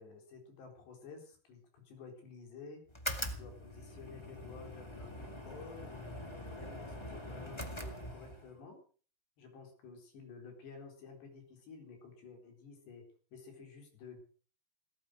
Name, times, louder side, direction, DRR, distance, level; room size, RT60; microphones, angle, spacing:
voice 1, 0.0-2.8 3.3-8.8 9.4-13.1 13.3-14.2, left 4 dB, 85° left, 4 dB, 6.3 m, -52 dB
sound 1, 2.9-8.6, left 1 dB, 35° left, 0.4 m, -43 dB
17.0 x 13.5 x 6.3 m, 0.43 s
omnidirectional pair, 4.8 m